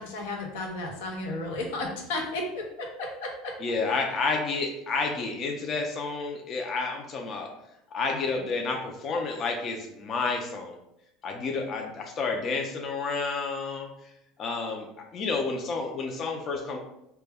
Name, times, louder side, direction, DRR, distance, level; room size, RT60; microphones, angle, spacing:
voice 1, 0.0-3.5, left 2 dB, 90° left, 1 dB, 0.6 m, -33 dB
voice 2, 3.6-7.5 7.9-10.8 11.2-13.9 14.4-14.9 15.1-16.8, left 4 dB, 40° left, 2 dB, 0.4 m, -30 dB
2.1 x 2.1 x 3.3 m, 0.82 s
supercardioid pair, 130°, 0 cm